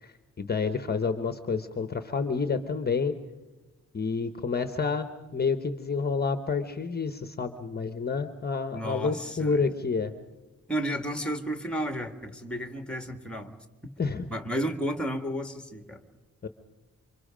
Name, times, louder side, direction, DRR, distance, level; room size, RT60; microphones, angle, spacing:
voice 1, 0.0-3.1 3.9-5.1 5.3-10.1 14.0-14.3 16.4-16.5, left 5 dB, 30° left, 9 dB, 0.9 m, -29 dB
voice 2, 8.7-9.7 10.7-13.5 13.8-13.9 14.3-16.0, equal, 5° left, 7 dB, 1.7 m, -32 dB
28.0 x 25.5 x 5.1 m, 1.2 s
wide cardioid pair, 180°, 31 cm